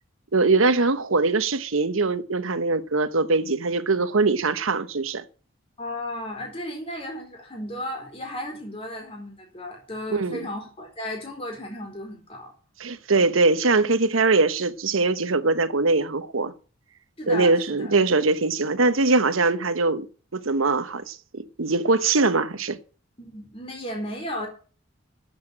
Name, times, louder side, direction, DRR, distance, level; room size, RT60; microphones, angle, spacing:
voice 1, 0.3-5.2 10.1-10.5 12.8-16.5 17.3-20.1 20.3-22.8, right 3 dB, 90° right, 1.1 m, -22 dB
voice 2, 5.8-12.5 17.2-17.9 23.2-24.5, left 1 dB, 30° left, 4.4 m, -34 dB
9.8 x 8.1 x 8.6 m
head